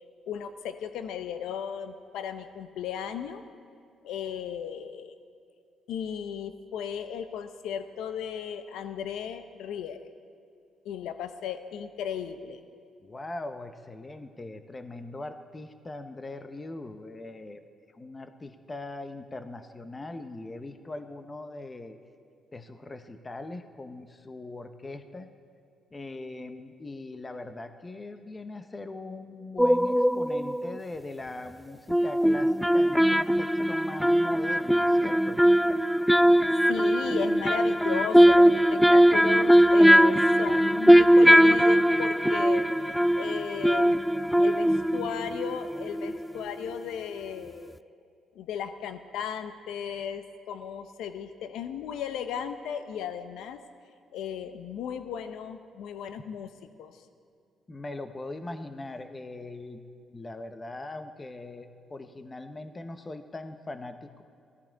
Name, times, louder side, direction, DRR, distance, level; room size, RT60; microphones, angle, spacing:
voice 1, 0.3-3.4 4.0-5.1 5.9-10.1 10.8-12.6 36.7-43.9 44.4-47.7 48.3-53.6 54.1-56.5 56.8-57.0, left 8 dB, 85° left, 9 dB, 0.7 m, -36 dB
voice 2, 13.0-17.6 17.9-22.0 22.5-25.3 25.9-35.4 57.7-59.8 60.1-64.2, left 2 dB, 25° left, 8 dB, 0.8 m, -40 dB
sound 1, 29.6-30.8 31.9-46.4 46.7-46.8, equal, ahead, 0.3 m, -20 dB
17.5 x 14.0 x 4.5 m, 2.4 s
cardioid pair, 90°, 0 cm